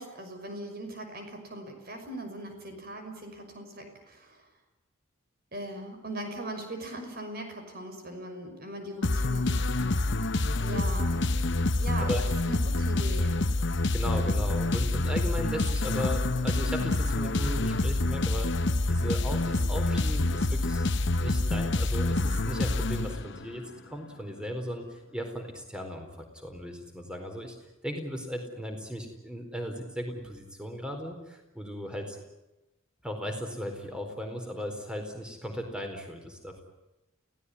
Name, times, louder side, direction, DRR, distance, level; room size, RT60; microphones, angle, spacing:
voice 1, 0.0-4.5 5.5-10.1 10.6-11.3 11.8-12.1 12.5-13.5, right 1 dB, 45° right, 6 dB, 6.0 m, -40 dB
sound 1, 9.0-23.6, left 2 dB, 55° left, 1.0 m, -27 dB
voice 2, 13.9-20.9 21.2-27.6 27.8-32.2 33.0-36.6, equal, 5° right, 4 dB, 4.4 m, -36 dB
29.0 x 17.5 x 9.9 m, 0.99 s
head